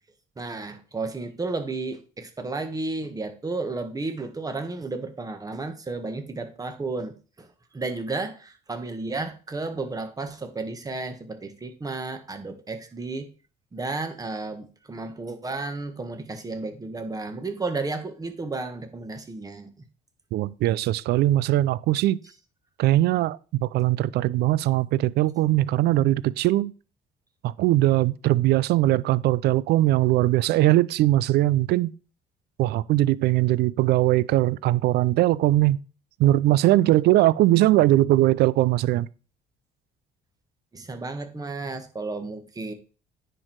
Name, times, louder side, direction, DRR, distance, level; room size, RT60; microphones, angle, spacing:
voice 1, 0.4-7.5 7.7-13.3 13.7-19.7 40.7-42.7, right 3 dB, 20° right, 1.5 m, -33 dB
voice 2, 20.3-22.2 22.8-26.7 27.4-31.9 32.6-35.8 36.2-39.1, right 15 dB, 75° right, 0.5 m, -20 dB
9.7 x 4.6 x 4.7 m
cardioid pair, 110°, 17 cm